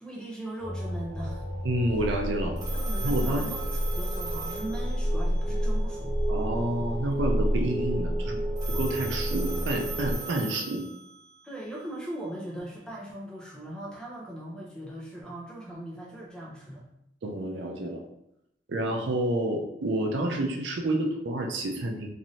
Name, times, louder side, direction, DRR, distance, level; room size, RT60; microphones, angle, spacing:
voice 1, 0.0-1.5 2.7-3.6 3.9-6.2 11.4-16.8, right 1 dB, 5° left, -4 dB, 0.6 m, -39 dB
sound 1, 0.6-10.2, equal, 50° right, 1.0 m, -29 dB
voice 2, 1.6-2.6 3.0-3.5 6.3-8.4 8.7-10.8 17.2-18.0 18.7-22.1, right 1 dB, 75° right, 2 dB, 0.5 m, -29 dB
Telephone, 2.6-5.4 8.6-11.4, right 4 dB, 20° right, 1.0 m, -39 dB
3.1 x 2.6 x 2.7 m, 0.80 s
head